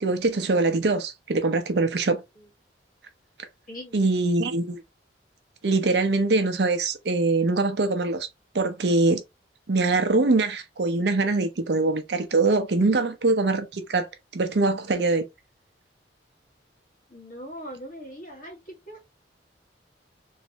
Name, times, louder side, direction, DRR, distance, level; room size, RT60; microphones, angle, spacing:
voice 1, 0.0-2.2 3.9-4.8 5.6-8.3 8.5-9.2 9.7-14.1 14.3-15.3, right 3 dB, 60° right, 0.6 m, -23 dB
voice 2, 3.7-4.0 17.1-19.0, equal, 45° left, 1.4 m, -41 dB
3.2 x 2.6 x 2.8 m
head